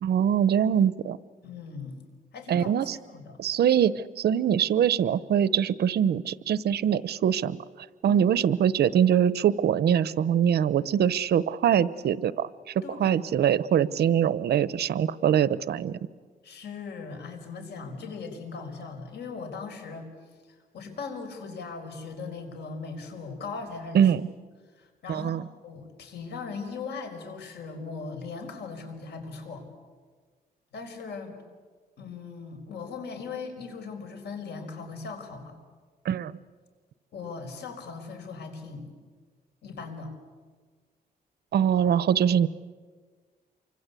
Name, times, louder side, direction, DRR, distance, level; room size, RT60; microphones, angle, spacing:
voice 1, 0.0-1.2 2.5-3.0 3.4-7.6 8.0-12.7 13.0-16.0 23.9-24.3 25.1-25.4 36.0-36.3 41.5-42.5, right 9 dB, 75° right, 17 dB, 0.8 m, -23 dB
voice 2, 1.4-2.0 2.3-3.4 8.0-8.2 12.8-13.2 16.4-20.1 20.5-24.1 24.8-25.3 25.6-29.6 30.7-31.4 32.0-35.6 37.1-38.9 39.6-40.1, left 4 dB, 85° left, 5 dB, 5.0 m, -39 dB
28.5 x 25.0 x 8.3 m, 1.5 s
wide cardioid pair, 140°, 17 cm